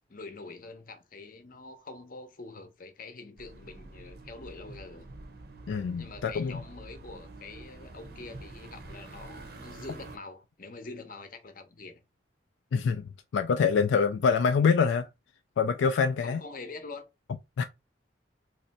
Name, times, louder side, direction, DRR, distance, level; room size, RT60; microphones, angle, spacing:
voice 1, 0.1-5.1 6.0-12.0 16.2-17.1, left 3 dB, 45° left, 0.7 m, -45 dB
sound 1, 3.4-10.2, right 2 dB, 55° right, 0.6 m, -47 dB
voice 2, 5.7-6.6 12.7-15.1 15.6-16.4 17.6-17.7, left 5 dB, 75° left, 0.3 m, -25 dB
3.1 x 2.6 x 4.0 m
head